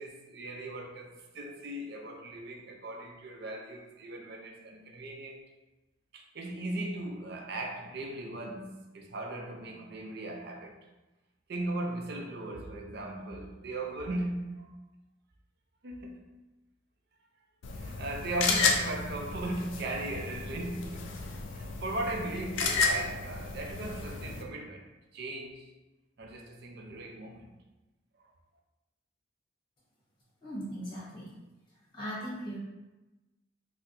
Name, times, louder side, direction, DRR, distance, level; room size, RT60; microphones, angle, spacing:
voice 1, 0.0-5.4 6.1-10.8 11.5-14.7 15.8-16.4 17.7-21.2 21.5-24.9 25.1-25.7 26.2-27.5 28.2-28.3, right 2 dB, 55° right, 0.5 m, -38 dB
sound 1, 17.6-24.4, left 4 dB, 70° left, 0.4 m, -32 dB
voice 2, 30.4-31.3 31.7-32.6, equal, 25° left, 1.1 m, -39 dB
4.3 x 2.0 x 2.6 m
head